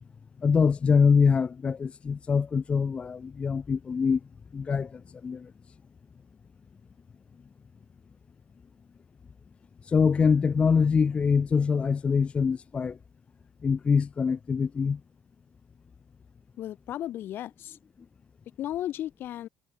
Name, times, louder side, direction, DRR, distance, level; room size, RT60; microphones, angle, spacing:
voice 1, 0.4-4.2 4.5-5.5 9.8-13.0 13.6-15.0, left 5 dB, 30° left, 0.8 m, -24 dB
voice 2, 16.6-17.8 18.6-19.5, left 12 dB, 60° left, 3.0 m, -34 dB
cardioid pair, 120°, 4 cm